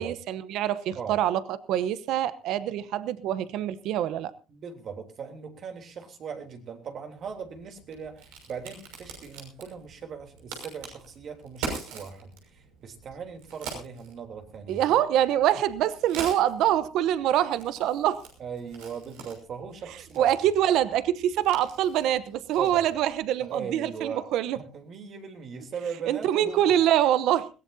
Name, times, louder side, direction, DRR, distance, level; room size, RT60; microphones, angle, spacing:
voice 1, 0.0-1.4 1.7-4.3 14.7-18.2 20.2-24.6 26.1-27.5, right 11 dB, 70° right, 0.9 m, -25 dB
voice 2, 4.5-15.0 18.4-20.3 22.6-22.9 23.4-24.3 24.5-26.7, right 6 dB, 50° right, 3.3 m, -39 dB
Crack, 7.2-23.3, right 4 dB, 90° right, 6.0 m, -44 dB
21.0 x 16.5 x 2.8 m
supercardioid pair, 95°, 0 cm